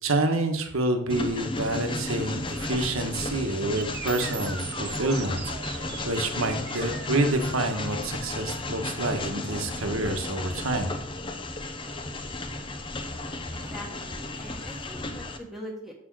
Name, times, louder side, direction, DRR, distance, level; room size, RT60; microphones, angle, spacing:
voice 1, 0.0-11.0, right 2 dB, 75° right, 5 dB, 1.4 m, -28 dB
Train, 1.1-15.4, left 2 dB, 25° left, 0.7 m, -34 dB
sound 1, 3.8-11.7, right 8 dB, 50° right, 0.7 m, -42 dB
voice 2, 13.5-15.9, equal, ahead, -1 dB, 1.5 m, -42 dB
7.4 x 6.2 x 6.2 m, 0.75 s
head